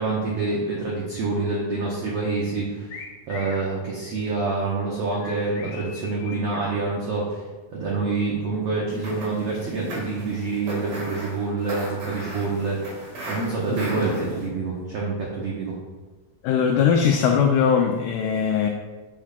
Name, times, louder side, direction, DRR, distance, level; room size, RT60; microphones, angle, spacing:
voice 1, 0.0-2.9 3.3-7.4 7.7-13.0 13.3-15.8, right 3 dB, 80° right, -4 dB, 1.3 m, -27 dB
sound 1, 2.9-3.7 5.2-6.7, left 4 dB, 70° left, 1.6 m, -40 dB
sound 2, 8.9-14.5, right 1 dB, 55° right, 2.6 m, -34 dB
voice 2, 16.4-18.7, left 7 dB, 85° left, 3 dB, 1.7 m, -20 dB
7.8 x 7.3 x 2.2 m, 1.2 s
omnidirectional pair, 4.1 m